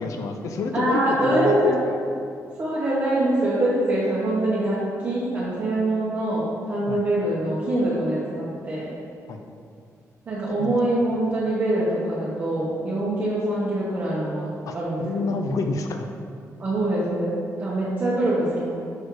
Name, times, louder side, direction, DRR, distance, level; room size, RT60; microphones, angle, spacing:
voice 1, 0.0-1.6 1.8-1.9 6.9-7.0 9.3-9.4 10.6-10.7 14.7-14.8 15.0-16.1, left 3 dB, 65° left, 5 dB, 0.6 m, -28 dB
voice 2, 0.7-1.8 2.6-8.9 10.3-15.3 16.6-18.8, right 1 dB, 30° right, -8 dB, 1.1 m, -24 dB
6.7 x 4.4 x 4.6 m, 2.3 s
wide cardioid pair, 165°, 6 cm